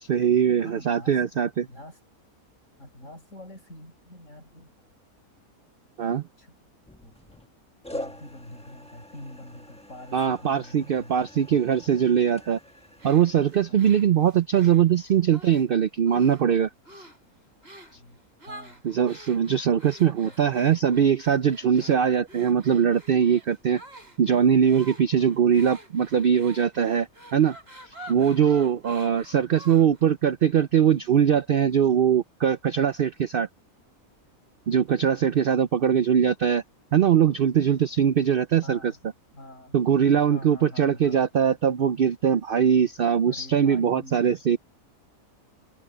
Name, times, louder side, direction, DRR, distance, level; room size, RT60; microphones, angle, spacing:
voice 1, 0.0-1.7 6.0-6.2 10.1-12.6 13.0-16.7 18.8-23.8 24.2-27.6 27.8-33.5 34.7-36.6 36.9-38.9 39.7-44.6, right 8 dB, 70° right, 0.5 m, -21 dB
voice 2, 0.6-2.0 2.8-4.8 6.4-6.6 7.0-7.4 7.9-11.4 13.7-13.9 17.9-18.2 18.5-18.8 20.0-20.8 21.8-22.0 38.6-39.0 39.3-39.8 40.3-41.2 43.3-44.4, left 1 dB, 55° left, 7.8 m, -45 dB
sound 1, 6.8-7.5 7.8-13.8, left 1 dB, 5° left, 1.2 m, -44 dB
sound 2, 13.0-15.7 16.1-16.5 16.9-17.2 17.6-18.0 18.4-30.1, right 1 dB, 40° right, 4.8 m, -48 dB
omnidirectional pair, 1.6 m